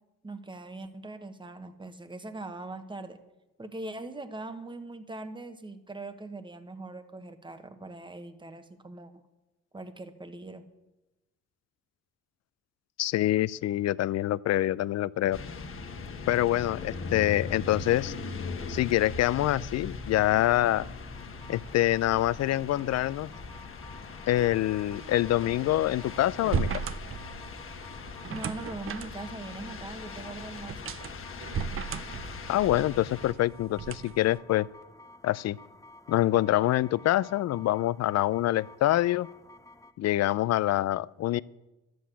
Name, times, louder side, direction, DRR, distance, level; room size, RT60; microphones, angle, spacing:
voice 1, 0.2-3.2 3.6-9.1 9.7-10.6 28.3-30.9, right 2 dB, 15° right, 10 dB, 1.1 m, -41 dB
voice 2, 13.0-15.4 16.3-18.1 18.7-20.8 21.5-23.3 24.3-26.8 32.5-34.7 35.2-35.6 36.1-39.3 40.0-41.4, left 14 dB, 60° left, 21 dB, 0.4 m, -25 dB
sound 1, 15.3-33.3, left 4 dB, 45° left, 1.4 m, -40 dB
sound 2, 21.1-39.9, left 1 dB, 10° left, 0.8 m, -53 dB
sound 3, 24.4-34.4, right 7 dB, 45° right, 0.7 m, -37 dB
11.5 x 7.7 x 8.3 m, 1.0 s
cardioid pair, 90°, 30 cm